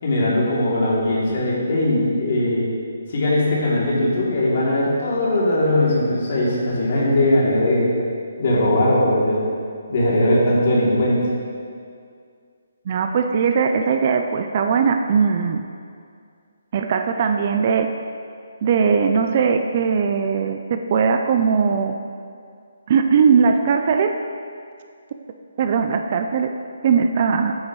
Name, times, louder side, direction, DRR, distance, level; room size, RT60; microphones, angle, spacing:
voice 1, 0.0-2.7 3.1-7.9 8.4-9.5 9.9-11.2, left 1 dB, 40° left, -6 dB, 2.8 m, -19 dB
voice 2, 12.9-15.6 16.7-17.9 18.6-22.0 22.9-24.2 25.6-26.5 26.8-27.6, right 6 dB, 30° right, 6 dB, 0.4 m, -19 dB
14.5 x 9.4 x 3.1 m, 2.3 s
hypercardioid pair, 175°, 0 cm